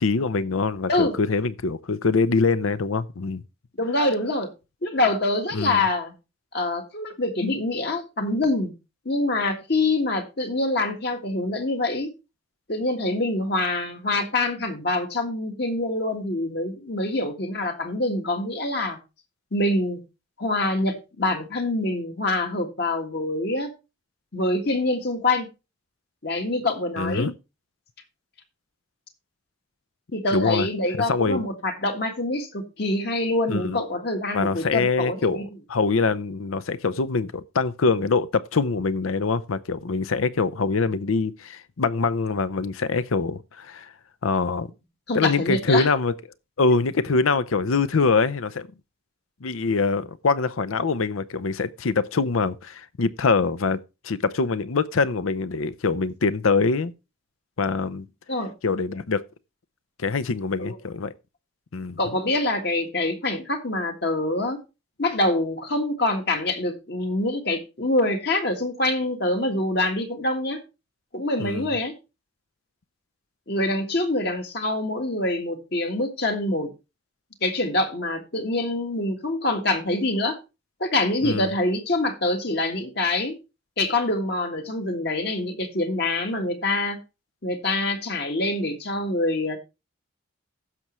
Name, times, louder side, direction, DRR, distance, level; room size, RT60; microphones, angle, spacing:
voice 1, 0.0-3.4 5.5-5.8 27.0-27.3 30.3-30.7 31.1-31.4 33.5-33.8 34.3-43.9 44.2-44.7 45.1-46.1 46.6-48.7 49.4-56.9 57.6-58.1 58.6-59.2 60.0-61.1 61.7-62.0 71.4-71.7 81.2-81.5, left 4 dB, 85° left, 0.7 m, -24 dB
voice 2, 3.8-4.5 4.8-6.1 6.5-8.7 9.1-12.1 12.7-19.0 19.5-20.0 20.4-23.7 24.3-25.5 26.2-27.3 30.1-35.4 45.1-45.9 58.3-58.5 60.6-60.8 62.0-64.6 65.0-70.6 71.1-71.9 73.5-76.7 77.4-80.4 80.8-83.4 83.8-87.0 87.4-89.6, left 2 dB, 50° left, 1.6 m, -25 dB
15.5 x 6.1 x 3.1 m
head